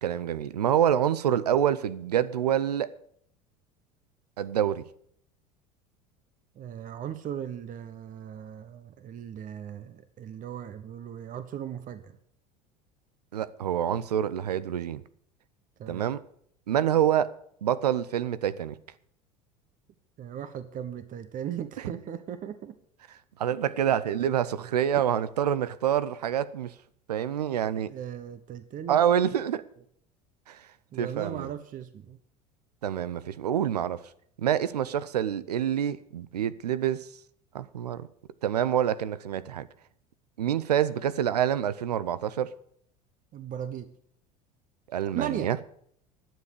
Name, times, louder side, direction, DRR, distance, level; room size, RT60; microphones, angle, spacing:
voice 1, 0.0-2.9 4.4-4.8 13.3-15.0 15.9-16.2 16.7-17.3 17.6-18.7 23.4-26.7 27.1-27.9 28.9-29.6 30.5-30.6 31.0-31.5 32.8-34.0 34.4-37.1 37.5-38.1 38.4-39.7 40.4-42.5 44.9-45.6, right 10 dB, 90° right, 0.6 m, -26 dB
voice 2, 6.5-12.2 15.8-16.1 20.2-22.8 24.9-25.0 27.9-29.0 30.9-32.2 43.3-43.9 45.1-45.5, right 9 dB, 40° right, 1.1 m, -37 dB
11.5 x 7.3 x 8.2 m
hypercardioid pair, 80°, 20 cm